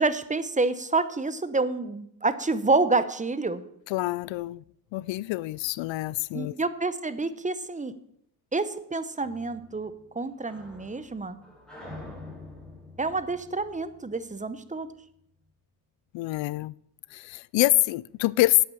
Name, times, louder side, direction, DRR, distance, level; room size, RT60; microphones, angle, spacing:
voice 1, 0.0-3.6 6.3-7.9 8.5-11.4 13.0-14.9, right 3 dB, 15° right, 0.9 m, -28 dB
voice 2, 3.9-4.6 4.9-6.6 16.1-16.7 17.1-18.6, left 19 dB, 80° left, 0.5 m, -26 dB
sound 1, 9.2-14.7, left 2 dB, ahead, 5.4 m, -46 dB
11.0 x 8.7 x 7.0 m
cardioid pair, 100°, 44 cm